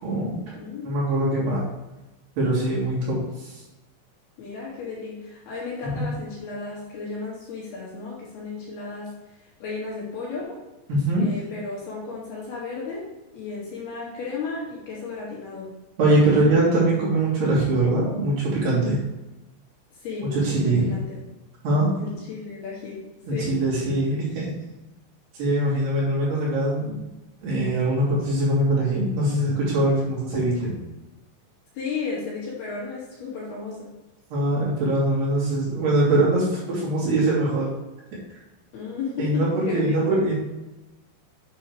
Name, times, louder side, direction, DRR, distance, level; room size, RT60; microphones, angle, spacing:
voice 1, 0.0-0.4 0.8-1.6 2.4-3.6 5.8-6.1 10.9-11.3 16.0-19.0 20.3-20.9 21.6-21.9 23.3-24.5 25.4-27.0 27.4-30.7 34.3-37.7 39.2-40.4, right 1 dB, 55° right, -7 dB, 4.9 m, -22 dB
voice 2, 0.5-1.0 4.4-9.1 9.6-10.6 11.2-13.0 13.3-15.8 16.3-16.6 19.9-21.2 22.0-23.5 25.6-25.9 31.7-33.9 38.7-40.3, left 4 dB, 60° left, -5 dB, 3.7 m, -34 dB
10.5 x 7.7 x 3.3 m, 1.0 s
omnidirectional pair, 5.8 m